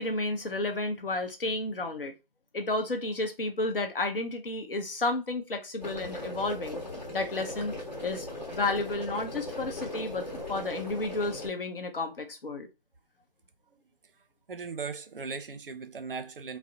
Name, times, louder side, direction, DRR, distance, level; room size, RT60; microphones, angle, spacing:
voice 1, 0.0-2.1 2.5-6.8 7.1-7.7 8.0-12.7, left 2 dB, 70° left, 0.7 m, -32 dB
sound 1, 5.8-11.5, left 1 dB, 45° left, 1.0 m, -38 dB
voice 2, 14.5-16.6, right 5 dB, 65° right, 0.5 m, -38 dB
2.4 x 2.0 x 2.7 m
figure-of-eight pair, 175°, 29 cm